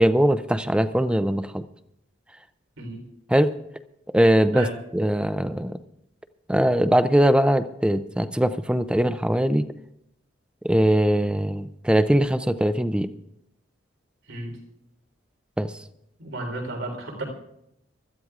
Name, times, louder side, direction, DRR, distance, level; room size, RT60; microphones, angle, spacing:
voice 1, 0.0-1.6 3.3-3.5 4.1-4.7 4.9-5.7 6.5-9.6 10.6-13.1 15.6-15.7, equal, 5° right, 11 dB, 0.4 m, -21 dB
voice 2, 16.2-17.2, right 2 dB, 90° right, 1 dB, 3.8 m, -33 dB
24.0 x 14.0 x 2.4 m, 0.81 s
head